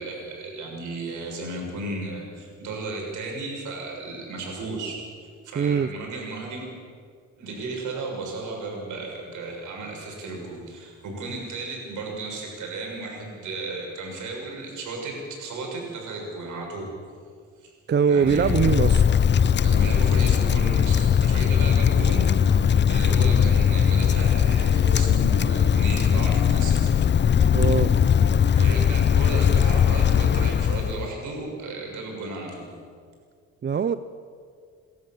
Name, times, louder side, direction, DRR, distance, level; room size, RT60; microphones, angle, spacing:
voice 1, 0.0-6.6 7.4-16.9 17.6-17.7 18.1-18.5 19.6-26.9 28.5-32.7, right 2 dB, 80° right, 0 dB, 6.8 m, -34 dB
voice 2, 5.6-5.9 17.9-19.1 27.5-27.9 33.6-34.0, right 6 dB, 35° right, 13 dB, 0.7 m, -22 dB
Wind, 18.2-31.1, left 8 dB, 35° left, 0.6 m, -20 dB
29.5 x 13.0 x 7.6 m, 2.1 s
cardioid pair, 90°, 30 cm